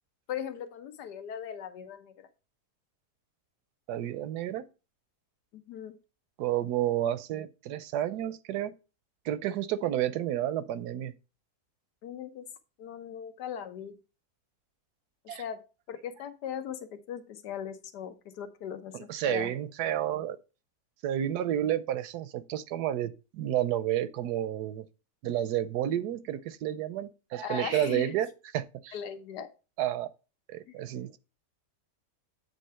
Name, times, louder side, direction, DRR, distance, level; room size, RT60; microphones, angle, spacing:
voice 1, 0.3-2.3 5.5-6.0 12.0-12.5 12.8-14.0 15.4-15.6 15.9-19.6 27.4-28.1 28.9-29.5 30.7-30.8, left 9 dB, 85° left, 1.5 m, -39 dB
voice 2, 3.9-4.6 6.4-8.7 9.2-11.1 15.3-15.4 18.9-20.4 21.0-24.8 25.2-28.3 28.5-28.9 29.8-30.1 30.5-31.2, right 12 dB, 80° right, 1.2 m, -30 dB
8.4 x 3.5 x 5.5 m
omnidirectional pair, 1.7 m